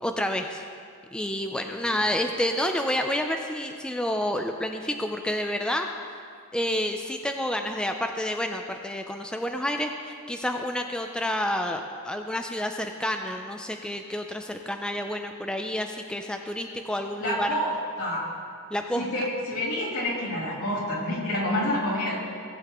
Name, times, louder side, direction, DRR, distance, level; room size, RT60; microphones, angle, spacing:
voice 1, 0.0-0.6 1.1-6.2 6.5-17.5 18.7-19.1, left 1 dB, 5° left, 4 dB, 0.4 m, -29 dB
voice 2, 17.2-18.3 19.0-22.2, left 1 dB, 80° left, -6 dB, 3.0 m, -28 dB
17.5 x 8.3 x 3.0 m, 2.2 s
head